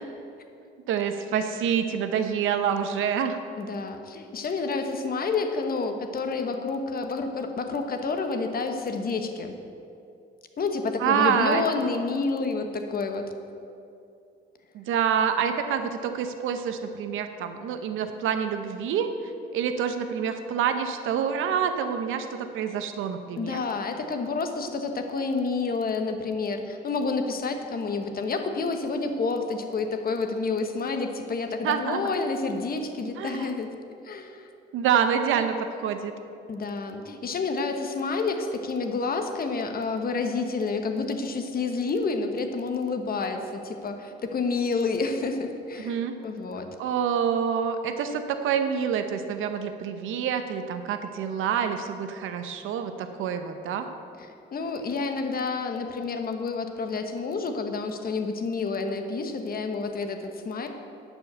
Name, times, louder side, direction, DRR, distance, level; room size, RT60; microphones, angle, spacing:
voice 1, 0.9-3.4 11.0-11.6 14.7-19.1 19.5-23.6 31.6-32.0 33.2-33.5 34.7-35.5 35.8-36.1 45.8-46.1 46.8-53.9, right 7 dB, 85° right, 8 dB, 0.9 m, -27 dB
voice 2, 3.6-9.6 10.6-13.3 23.4-33.7 34.0-34.5 36.5-46.7 54.2-60.7, left 4 dB, 50° left, 6 dB, 1.2 m, -29 dB
11.5 x 5.5 x 8.2 m, 2.6 s
cardioid pair, 90°, 20 cm